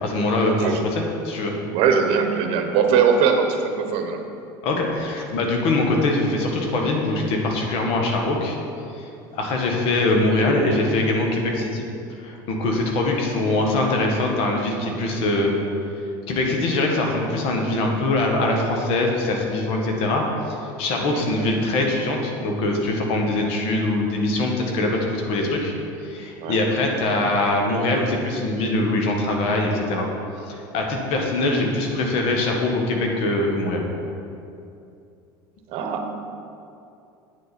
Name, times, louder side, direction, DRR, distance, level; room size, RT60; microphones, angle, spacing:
voice 1, 0.0-1.5 4.6-8.6 8.9-11.8 12.2-15.5 16.3-25.7 26.0-30.1 30.4-33.8, left 2 dB, 60° left, 1 dB, 1.6 m, -23 dB
voice 2, 1.7-4.2 20.9-21.2 26.4-26.6 35.7-36.1, right 6 dB, 60° right, 5 dB, 1.1 m, -21 dB
9.0 x 7.0 x 4.3 m, 2.6 s
supercardioid pair, 110°, 11 cm